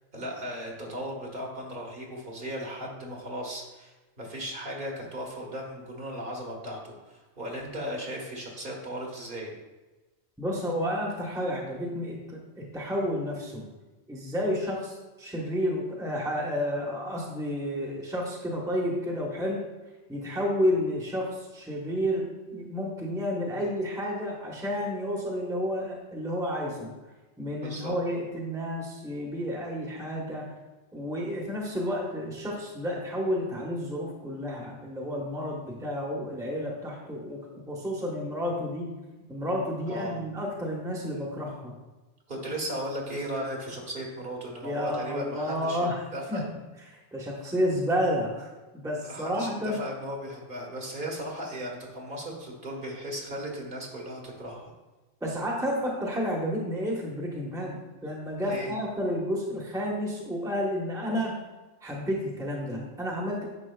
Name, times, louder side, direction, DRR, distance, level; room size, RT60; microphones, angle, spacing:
voice 1, 0.1-9.5 23.5-23.6 27.6-27.9 39.9-40.2 42.3-45.9 46.1-46.4 49.0-54.7 58.4-58.7, equal, 50° right, -1 dB, 1.6 m, -36 dB
voice 2, 10.4-13.6 14.1-19.6 20.1-26.9 27.4-30.5 30.9-38.9 39.3-41.7 44.6-46.0 46.3-46.5 46.9-49.8 55.2-61.4 61.8-63.5, equal, 5° right, -2 dB, 1.0 m, -31 dB
9.7 x 6.1 x 2.3 m, 1.2 s
omnidirectional pair, 1.1 m